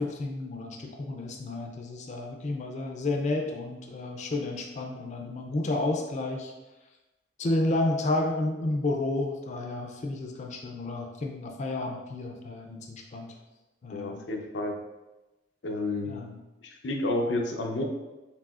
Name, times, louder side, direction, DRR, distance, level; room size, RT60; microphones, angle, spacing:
voice 1, 0.0-6.5 7.4-13.3 13.8-14.2 16.1-16.4, left 2 dB, 40° left, 1 dB, 0.4 m, -31 dB
voice 2, 13.9-14.8 15.6-16.3 16.6-17.8, left 2 dB, 90° left, 2 dB, 0.6 m, -30 dB
4.7 x 3.4 x 2.4 m, 1.1 s
head